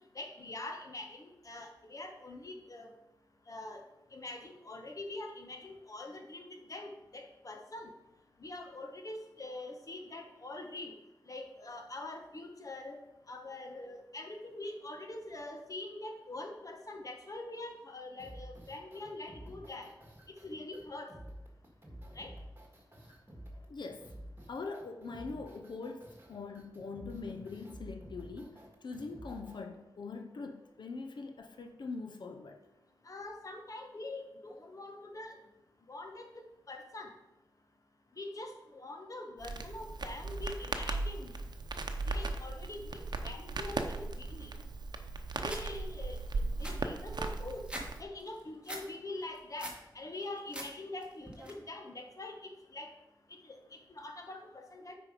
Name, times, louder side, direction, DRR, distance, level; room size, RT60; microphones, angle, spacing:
voice 1, 0.1-2.9 3.5-3.8 4.1-7.9 8.4-10.9 11.3-13.0 13.3-19.9 20.4-21.1 22.2-22.3 33.1-35.3 35.9-36.3 36.7-37.1 38.2-41.3 42.1-44.5 45.4-46.2 46.6-47.6 48.0-52.4 52.7-52.9 53.5-53.6 54.0-55.0, left 2 dB, 50° left, 1.3 m, -44 dB
sound 1, 18.2-29.6, equal, 30° right, 1.8 m, -50 dB
voice 2, 23.7-24.1 24.5-32.6, left 4 dB, 90° left, 0.7 m, -43 dB
Crackle, 39.4-48.0, right 3 dB, 70° right, 0.8 m, -37 dB
sound 2, 45.4-45.6 46.1-46.2 46.4-47.9 48.2-48.8 49.2-49.8 50.2-50.7 51.0-51.5, right 1 dB, 15° right, 1.6 m, -43 dB
8.4 x 5.2 x 4.9 m
wide cardioid pair, 85°, 8 cm